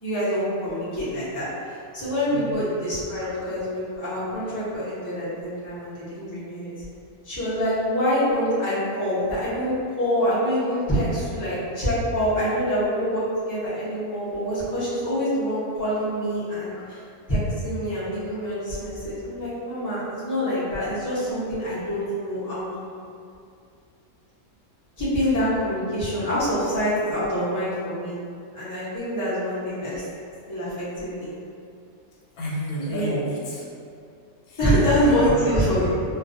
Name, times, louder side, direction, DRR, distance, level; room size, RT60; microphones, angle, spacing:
voice 1, 0.0-6.7 7.2-17.0 17.3-22.6 25.0-28.2 28.5-30.0 30.5-31.3 32.9-33.1 34.6-36.0, equal, 30° left, -11 dB, 0.3 m, -25 dB
voice 2, 2.3-2.6 32.3-33.7 34.4-34.7 35.0-36.0, equal, 85° left, -5 dB, 1.1 m, -31 dB
2.3 x 2.2 x 2.5 m, 2.4 s
omnidirectional pair, 1.5 m